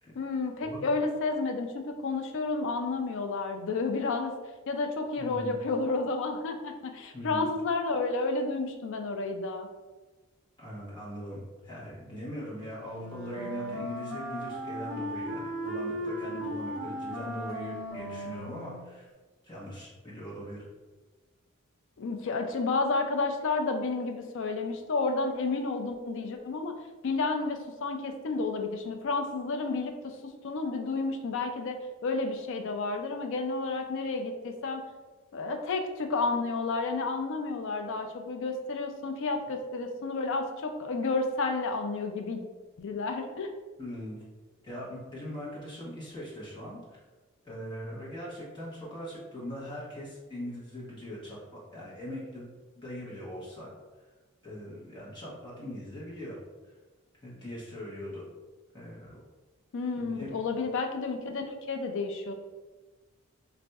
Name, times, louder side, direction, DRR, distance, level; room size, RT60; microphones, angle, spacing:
voice 1, 0.1-4.3 4.7-9.7 22.0-26.7 27.0-31.8 32.0-34.8 35.3-42.4 42.8-43.5 59.7-62.3, left 3 dB, 55° left, 5 dB, 0.4 m, -31 dB
voice 2, 5.2-5.6 7.1-7.5 10.6-19.1 19.4-20.6 43.8-44.2 44.6-47.0 47.4-52.5 52.8-53.7 54.4-56.4 56.6-56.7 57.2-58.3 58.7-59.2 59.9-60.3, equal, 20° left, -7 dB, 1.0 m, -41 dB
Wind instrument woodwind instrument, 12.9-18.9, equal, 40° right, 1.1 m, -37 dB
4.0 x 2.5 x 2.3 m, 1.3 s
head